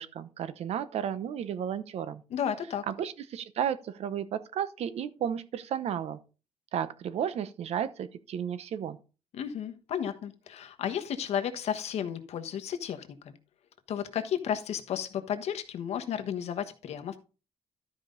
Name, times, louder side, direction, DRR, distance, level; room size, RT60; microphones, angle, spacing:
voice 1, 0.0-2.2 2.9-6.2 6.7-9.0, right 9 dB, 65° right, 0.9 m, -33 dB
voice 2, 2.3-2.8 9.3-13.4 13.9-17.2, left 9 dB, 70° left, 1.2 m, -33 dB
12.5 x 5.2 x 3.9 m
cardioid pair, 160°, 12 cm